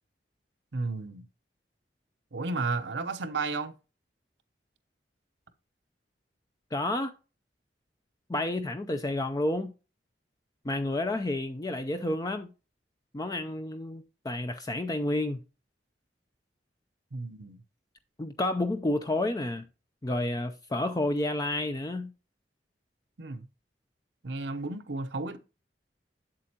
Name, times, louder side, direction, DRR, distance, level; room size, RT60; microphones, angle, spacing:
voice 1, 0.7-1.2 2.3-3.7 17.1-17.6 23.2-23.5 24.2-25.4, right 3 dB, 75° right, 0.8 m, -33 dB
voice 2, 6.7-7.1 8.3-9.7 10.6-12.5 13.1-15.4 18.2-19.7 20.0-22.1, left 1 dB, 20° left, 0.5 m, -30 dB
7.6 x 7.6 x 2.8 m
head